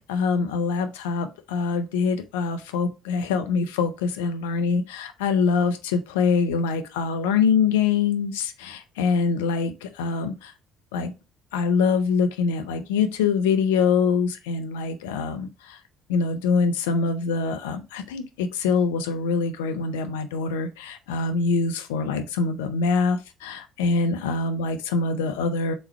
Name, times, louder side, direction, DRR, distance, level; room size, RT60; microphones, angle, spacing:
voice 1, 0.0-10.5 10.9-11.1 11.5-15.8 16.1-25.7, left 5 dB, 85° left, 0.5 m, -24 dB
3.5 x 3.1 x 4.3 m
hypercardioid pair, 60°, 0 cm